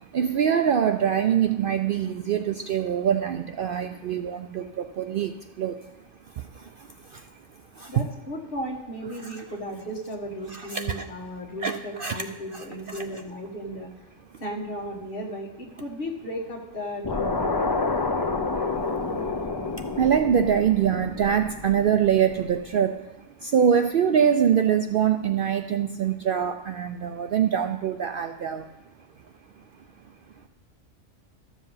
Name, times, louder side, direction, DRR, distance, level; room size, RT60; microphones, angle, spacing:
voice 1, 0.0-5.9 6.3-7.4 7.8-7.9 10.5-11.1 11.6-12.2 12.5-13.0 18.6-28.7, right 8 dB, 60° right, 7 dB, 0.6 m, -25 dB
voice 2, 7.9-13.9 14.4-17.6, equal, 50° left, -2 dB, 2.0 m, -35 dB
sound 1, 17.0-22.3, left 3 dB, 30° left, 0.4 m, -29 dB
13.5 x 7.3 x 5.6 m, 0.95 s
omnidirectional pair, 1.3 m